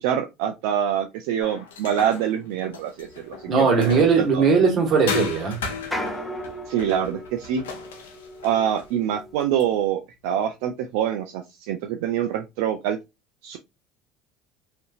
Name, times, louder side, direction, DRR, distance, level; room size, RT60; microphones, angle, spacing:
voice 1, 0.0-4.4 6.7-7.6 8.4-13.0 13.4-13.6, right 9 dB, 75° right, 0.3 m, -25 dB
sound 1, 1.4-4.4 5.1-8.9, left 5 dB, 90° left, 0.5 m, -35 dB
sound 2, 3.0-9.9, equal, 5° left, 0.8 m, -38 dB
voice 2, 3.5-5.6, right 5 dB, 45° right, 1.4 m, -19 dB
2.6 x 2.5 x 2.4 m
hypercardioid pair, 80°, 0 cm